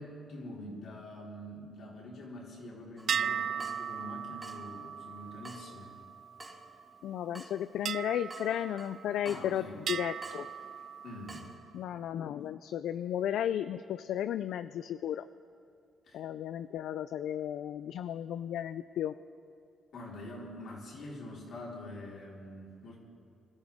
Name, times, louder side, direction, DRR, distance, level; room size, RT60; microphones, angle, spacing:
voice 1, 0.0-6.0 9.3-9.8 11.0-11.6 16.0-16.2 19.9-23.0, left 1 dB, 60° left, -4 dB, 4.3 m, -45 dB
Water tap faucet / Drip, 3.0-11.6, right 1 dB, 20° right, 2.3 m, -53 dB
sound 1, 3.1-6.8 7.8-9.4 9.9-11.5, right 8 dB, 60° right, 0.3 m, -38 dB
voice 2, 7.0-10.5 11.7-15.3 16.1-19.1, left 10 dB, 80° left, 13 dB, 0.4 m, -34 dB
25.5 x 13.5 x 3.6 m, 2.6 s
cardioid pair, 90°, 0 cm